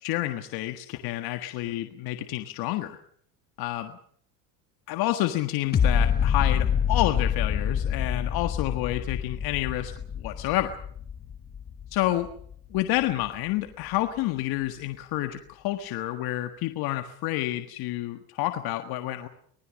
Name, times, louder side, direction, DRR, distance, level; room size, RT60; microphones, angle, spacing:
voice 1, 0.0-3.0 3.6-4.0 4.9-9.9 10.2-10.8 11.9-12.3 12.7-19.3, left 15 dB, 55° left, 7 dB, 1.7 m, -29 dB
sound 1, 5.7-12.8 13.2-13.3, left 8 dB, 20° left, 1.1 m, -26 dB
25.0 x 19.5 x 6.4 m, 0.62 s
supercardioid pair, 125°, 45 cm